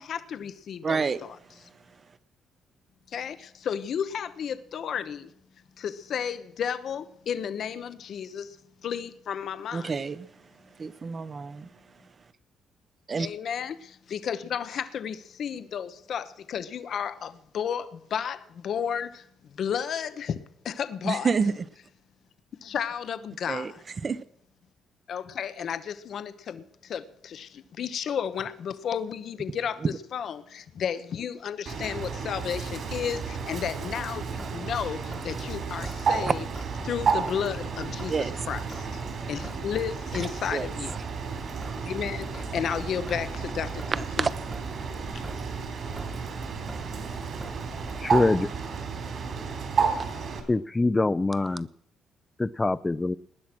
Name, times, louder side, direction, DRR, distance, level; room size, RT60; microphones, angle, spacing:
voice 1, 0.0-1.4 3.1-5.3 5.8-8.6 8.8-9.9 13.2-20.4 20.6-21.3 22.6-23.8 25.1-36.5 36.8-39.0 39.3-40.9 41.8-43.8 44.2-44.3 45.1-45.2, left 8 dB, 65° left, 1.0 m, -33 dB
voice 2, 0.8-1.2 9.7-10.3 10.8-11.7 13.1-13.3 21.0-21.5 23.5-23.7 24.0-24.2 38.1-38.3 40.5-40.7 43.9-44.3, right 5 dB, 40° right, 1.0 m, -28 dB
Bird, 31.7-50.4, right 5 dB, 60° right, 3.8 m, -32 dB
Traffic noise roadway noise / Drip / Trickle dribble, 34.3-48.3, right 1 dB, 10° right, 1.5 m, -44 dB
voice 3, 48.0-48.5 50.5-51.7 52.4-53.1, left 2 dB, 20° left, 0.6 m, -24 dB
19.5 x 10.0 x 6.1 m
cardioid pair, 90°, 0 cm